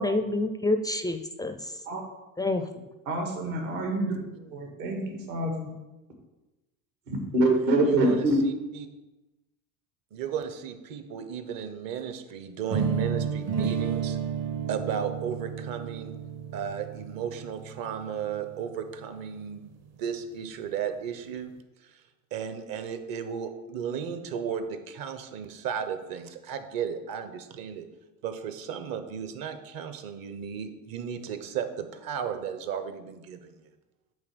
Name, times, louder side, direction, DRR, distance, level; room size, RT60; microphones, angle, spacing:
voice 1, 0.0-1.7 2.4-2.7, left 2 dB, 10° left, 7 dB, 0.4 m, -28 dB
voice 2, 3.1-5.7 7.1-8.4, right 1 dB, 75° right, 2 dB, 2.1 m, -26 dB
voice 3, 7.6-8.9 10.1-14.2 14.7-16.1 16.5-19.7 20.0-21.5 21.8-22.0 22.3-27.9 28.2-33.7, right 7 dB, 55° right, 9 dB, 1.1 m, -35 dB
sound 1, 12.7-18.6, right 7 dB, 35° right, 0.8 m, -31 dB
8.7 x 3.6 x 6.8 m, 1.1 s
hypercardioid pair, 85°, 43 cm